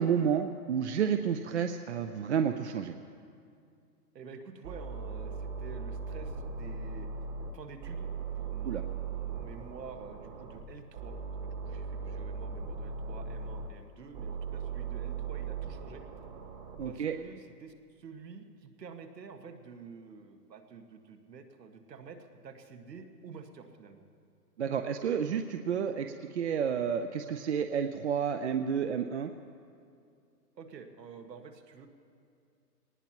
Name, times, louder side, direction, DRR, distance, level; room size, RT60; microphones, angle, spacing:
voice 1, 0.0-2.9 8.6-8.8 16.8-17.2 24.6-29.3, right 7 dB, 45° right, 7 dB, 0.5 m, -30 dB
voice 2, 4.1-7.1 7.5-8.1 8.3-11.2 11.4-16.0 16.8-24.0 30.6-31.9, right 5 dB, 85° right, 5 dB, 1.7 m, -49 dB
sound 1, 4.6-7.5 7.8-10.6 10.9-13.7 14.1-16.8, right 5 dB, 30° right, 1.2 m, -38 dB
22.5 x 19.0 x 3.0 m, 2.4 s
hypercardioid pair, 160°, 48 cm